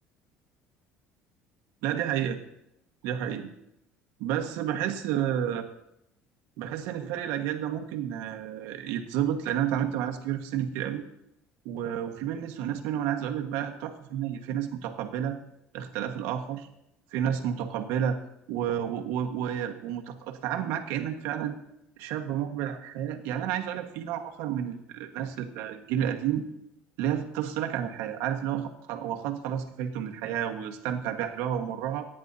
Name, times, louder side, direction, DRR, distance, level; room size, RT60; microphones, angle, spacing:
voice 1, 1.8-2.4 3.0-3.5 4.2-5.7 6.6-11.0 11.6-15.4 15.7-16.7 17.1-18.2 18.5-21.6 22.0-26.5 27.0-32.1, right 9 dB, 80° right, 4 dB, 1.4 m, -31 dB
24.5 x 10.0 x 2.8 m, 0.83 s
cardioid pair, 160°, 4 cm